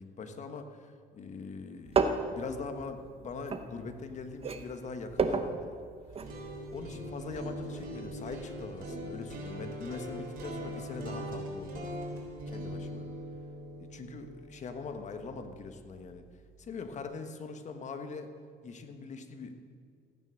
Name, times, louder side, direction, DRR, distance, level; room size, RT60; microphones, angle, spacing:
voice 1, 0.0-2.0 2.3-5.8 6.7-11.9 12.5-13.1 13.8-16.2 16.6-18.3 18.6-19.5, left 4 dB, 45° left, 7 dB, 1.4 m, -42 dB
sound 1, 1.9-4.1 4.4-6.4 6.6-6.8, right 5 dB, 35° right, 1.0 m, -31 dB
sound 2, 6.0-16.1, equal, 60° right, 3.7 m, -41 dB
15.0 x 9.7 x 6.4 m, 2.2 s
cardioid pair, 110°, 17 cm